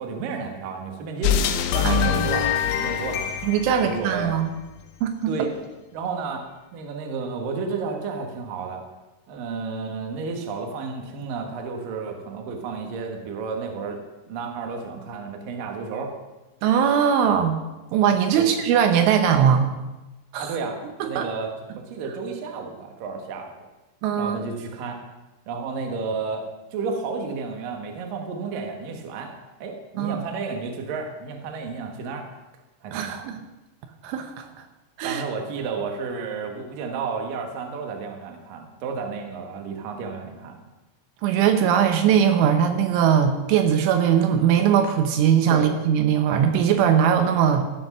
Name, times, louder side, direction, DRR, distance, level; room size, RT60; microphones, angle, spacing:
voice 1, 0.0-1.4 1.7-3.2 3.7-4.4 5.3-5.5 5.9-6.4 6.7-8.8 9.3-14.0 14.3-16.1 18.4-18.5 20.4-21.5 21.8-23.5 24.2-25.0 25.5-26.5 26.7-32.3 32.8-33.3 35.0-40.6 45.5-45.7, right 4 dB, 60° right, 3 dB, 2.6 m, -32 dB
sound 1, 1.2-4.7, left 9 dB, 80° left, 2.8 m, -24 dB
voice 2, 1.8-2.3 3.4-4.5 5.0-5.3 16.6-17.6 17.9-19.7 20.3-20.6 21.0-21.3 24.0-24.4 30.0-30.2 32.9-33.4 34.0-34.5 35.0-35.2 41.2-47.7, right 8 dB, 80° right, 6 dB, 3.2 m, -20 dB
14.5 x 8.1 x 6.1 m, 1.1 s
omnidirectional pair, 5.6 m